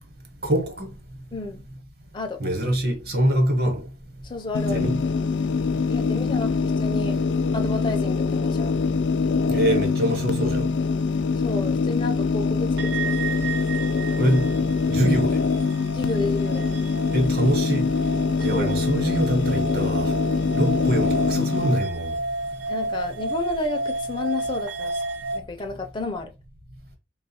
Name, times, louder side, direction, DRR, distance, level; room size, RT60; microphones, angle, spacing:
voice 1, 0.4-0.9 2.4-3.8 4.7-5.0 9.5-10.7 14.2-14.4 14.9-15.4 17.1-17.9 18.4-20.1 20.5-22.1, right 1 dB, 60° right, 1.0 m, -24 dB
voice 2, 1.3-1.6 2.1-2.4 4.2-4.9 5.9-7.1 7.5-8.7 11.4-13.1 15.9-16.7 18.5-18.8 22.7-25.0 25.3-26.3, left 3 dB, 25° left, 0.4 m, -31 dB
sound 1, 4.5-21.8, left 4 dB, 85° left, 0.4 m, -24 dB
sound 2, 12.8-25.4, right 2 dB, 80° right, 0.6 m, -32 dB
3.4 x 2.3 x 4.3 m
head